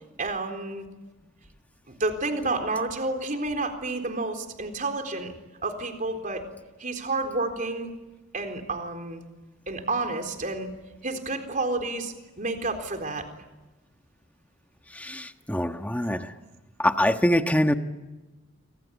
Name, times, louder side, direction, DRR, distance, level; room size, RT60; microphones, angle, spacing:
voice 1, 0.2-0.8 1.9-5.3 5.6-6.4 6.8-7.9 8.3-9.2 9.7-10.7 11.0-13.3, right 2 dB, 40° right, 5 dB, 4.0 m, -30 dB
voice 2, 15.0-16.3 16.8-17.7, left 1 dB, 10° left, 6 dB, 1.4 m, -24 dB
27.5 x 26.0 x 8.3 m, 1.1 s
head